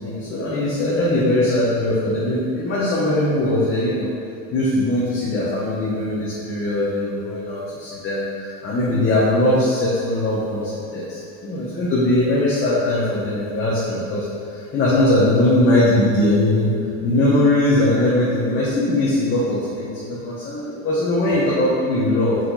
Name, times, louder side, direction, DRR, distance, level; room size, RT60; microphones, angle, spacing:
voice 1, 0.0-4.1 4.5-16.7 17.0-22.4, left 1 dB, 30° left, -7 dB, 1.2 m, -20 dB
6.0 x 5.5 x 4.1 m, 2.4 s
cardioid pair, 145°, 40 cm